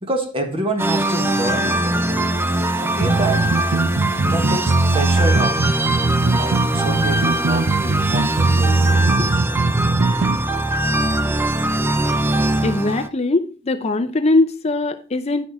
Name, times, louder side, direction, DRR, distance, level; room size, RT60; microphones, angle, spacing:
voice 1, 0.0-2.2 2.8-3.5 4.2-5.6 6.2-8.7 9.0-9.4, right 1 dB, 30° right, 1.5 m, -27 dB
sound 1, 0.8-13.1, right 1 dB, 10° right, 0.6 m, -22 dB
sound 2, 3.0-10.4, right 3 dB, 60° right, 0.6 m, -19 dB
voice 2, 12.6-15.5, left 2 dB, 35° left, 0.6 m, -20 dB
10.0 x 6.1 x 4.7 m
head